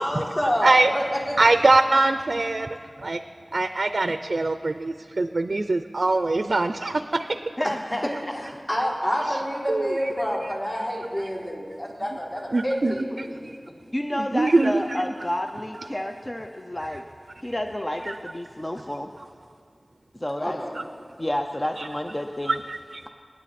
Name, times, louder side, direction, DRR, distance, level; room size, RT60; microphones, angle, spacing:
voice 1, 0.0-1.5 8.4-13.4 20.4-20.7, equal, 45° left, -5 dB, 4.1 m, -28 dB
voice 2, 0.6-0.9 1.4-2.7 3.0-3.2 3.5-7.4 9.7-10.0 12.5-13.6 14.1-15.0 16.0-16.1 16.8-16.9 20.7-20.8 21.8-21.9 22.4-23.1, right 2 dB, 75° right, 9 dB, 0.5 m, -23 dB
voice 3, 7.6-8.4 13.9-17.0 17.4-19.1 20.2-20.6 21.2-22.6, left 1 dB, 30° left, 4 dB, 0.7 m, -30 dB
27.0 x 9.9 x 4.2 m, 2.3 s
wide cardioid pair, 45°, 0 cm